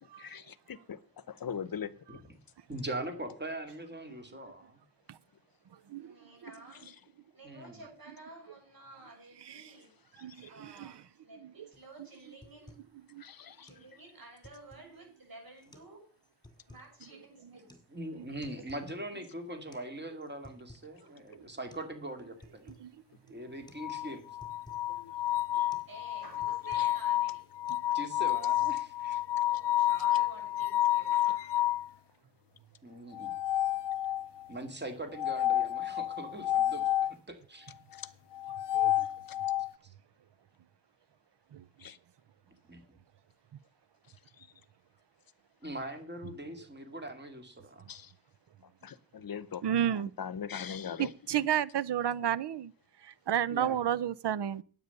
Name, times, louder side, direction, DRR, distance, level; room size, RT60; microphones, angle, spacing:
voice 1, 0.0-2.2 6.7-6.8 10.2-10.5 13.2-13.7 24.9-25.1 26.7-26.9 37.9-38.1 39.3-39.4 41.8-42.0 44.4-44.5 47.9-48.1 48.8-49.6 49.9-51.1 52.0-52.3, left 7 dB, 60° left, 0.8 m, -42 dB
voice 2, 2.7-4.8 7.4-7.8 17.9-22.7 23.3-24.2 25.5-25.7 27.9-29.2 32.8-33.4 34.5-37.7 39.8-39.9 42.7-42.8 45.6-47.9 53.5-53.8, right 1 dB, 25° right, 2.3 m, -41 dB
voice 3, 5.9-6.9 7.3-9.9 10.5-11.0 11.2-12.7 13.6-16.0 16.7-17.8 18.3-18.7 25.9-27.5 29.4-31.7, right 2 dB, 60° right, 6.9 m, -52 dB
voice 4, 10.2-10.9 11.6-11.7 13.1-13.2 21.3-21.4 22.7-22.9 38.7-39.1 41.5-41.6 49.6-50.1 51.0-52.7 53.0-54.6, right 10 dB, 85° right, 0.7 m, -31 dB
sound 1, 11.7-11.9 12.2-12.9 13.2-13.3 13.7-13.9 14.2-15.0 15.6-15.9 16.2-16.9 17.7-17.9 18.2-18.9 19.2-19.3 19.7-19.9 20.2-20.9 21.3-21.4 21.7-21.9 22.2-22.9 23.3-23.4 23.7-23.9 24.1-24.9 25.3-25.4 25.7-25.9 26.2-27.0 27.3-27.7, left 1 dB, 10° left, 2.1 m, -56 dB
sound 2, 23.8-31.9 33.1-34.4 35.2-37.1 38.3-39.7, left 13 dB, 90° left, 0.5 m, -30 dB
9.7 x 8.6 x 6.6 m
wide cardioid pair, 100°, 40 cm